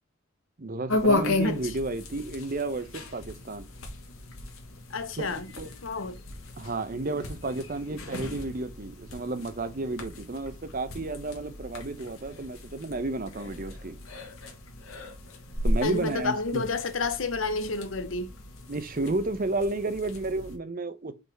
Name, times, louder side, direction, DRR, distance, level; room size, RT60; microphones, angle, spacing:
voice 1, 0.6-3.7 5.2-5.7 6.6-14.0 15.6-16.6 18.7-21.1, right 2 dB, 45° right, 0.7 m, -32 dB
sound 1, 0.9-20.6, left 2 dB, 85° left, 1.9 m, -35 dB
voice 2, 4.9-5.5 5.8-6.2 15.8-18.3, left 3 dB, 70° left, 0.9 m, -30 dB
5.4 x 4.1 x 4.6 m
head